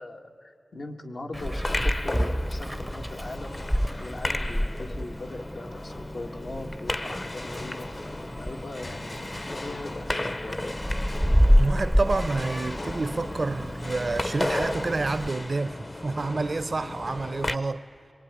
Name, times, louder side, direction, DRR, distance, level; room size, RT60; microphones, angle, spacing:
voice 1, 0.0-3.6 4.0-10.7, left 2 dB, 80° left, 2.0 m, -40 dB
sound 1, 1.3-17.6, left 1 dB, 40° left, 0.9 m, -35 dB
Meow, 1.3-15.3, equal, ahead, 0.6 m, -28 dB
voice 2, 11.5-17.8, right 3 dB, 65° right, 0.7 m, -29 dB
25.5 x 22.5 x 9.9 m
wide cardioid pair, 85°, 0 cm